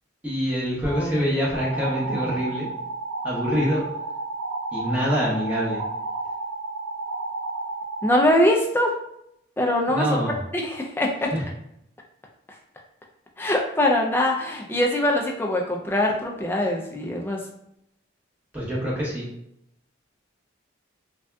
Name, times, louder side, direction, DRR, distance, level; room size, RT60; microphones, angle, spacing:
voice 1, 0.2-2.7 3.2-3.8 4.7-5.8 9.9-10.4 11.3-11.4 18.5-19.3, equal, 10° right, -7 dB, 0.9 m, -25 dB
voice 2, 0.9-1.2 8.0-8.9 9.6-10.1 10.5-11.3 13.4-17.4, left 1 dB, 10° left, 0 dB, 0.3 m, -22 dB
sound 1, 1.5-8.3, right 3 dB, 75° right, 0.4 m, -31 dB
3.3 x 2.6 x 2.2 m, 0.77 s
head